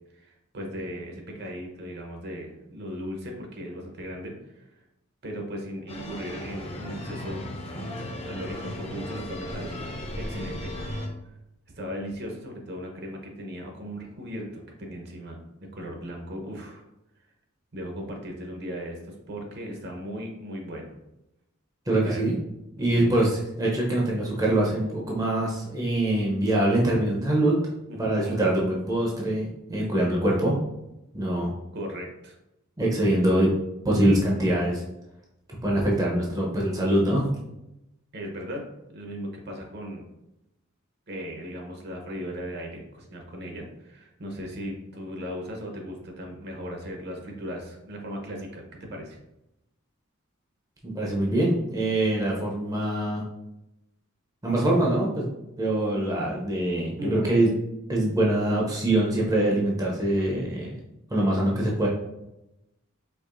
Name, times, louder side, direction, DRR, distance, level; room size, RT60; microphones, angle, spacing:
voice 1, 0.1-4.7 5.2-7.5 8.2-9.8 10.2-10.7 11.8-15.4 15.7-16.8 17.7-20.9 22.0-22.2 22.8-23.2 27.9-28.4 31.7-32.4 38.1-40.0 41.1-49.2 57.0-57.3, equal, 50° right, 2 dB, 0.8 m, -37 dB
sound 1, 5.9-11.1, left 1 dB, 30° left, 0.6 m, -35 dB
voice 2, 21.9-22.4 22.8-27.6 28.0-30.6 31.1-31.5 32.8-33.5 33.8-34.8 35.6-37.3 50.8-53.2 54.4-55.3 55.6-57.5 57.9-60.7 61.1-61.9, right 1 dB, 15° right, -3 dB, 0.6 m, -24 dB
4.7 x 2.9 x 2.5 m, 0.90 s
head